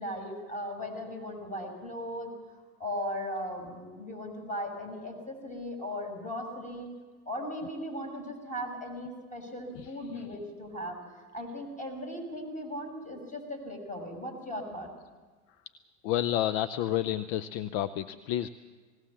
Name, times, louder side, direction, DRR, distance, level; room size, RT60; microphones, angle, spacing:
voice 1, 0.0-2.3 2.8-6.9 7.3-11.0 11.3-14.9, equal, 15° left, 4 dB, 5.9 m, -37 dB
voice 2, 9.7-10.2 16.0-18.5, left 12 dB, 55° left, 14 dB, 0.8 m, -30 dB
20.0 x 18.0 x 7.3 m, 1.4 s
hypercardioid pair, 95°, 44 cm